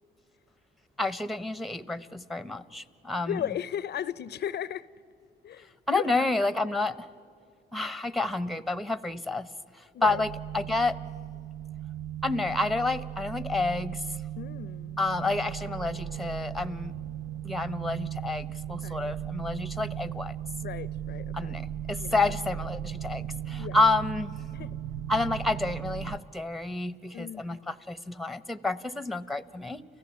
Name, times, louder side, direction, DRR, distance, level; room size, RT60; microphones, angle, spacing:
voice 1, 1.0-3.4 5.9-7.1 7.7-9.5 9.7-11.0 12.2-14.0 15.0-16.9 17.4-20.3 21.3-24.3 25.1-29.8, left 2 dB, ahead, 16 dB, 0.8 m, -29 dB
voice 2, 3.3-4.9 5.4-6.3 7.8-7.9 9.9-10.2 14.4-15.0 18.8-19.3 20.6-21.6 22.0-22.2 23.6-23.8 24.5-24.7 27.1-27.6, left 10 dB, 55° left, 19 dB, 0.5 m, -36 dB
sound 1, 10.0-26.2, right 10 dB, 55° right, 0.8 m, -37 dB
30.0 x 15.0 x 8.3 m, 2.4 s
cardioid pair, 90°, 20 cm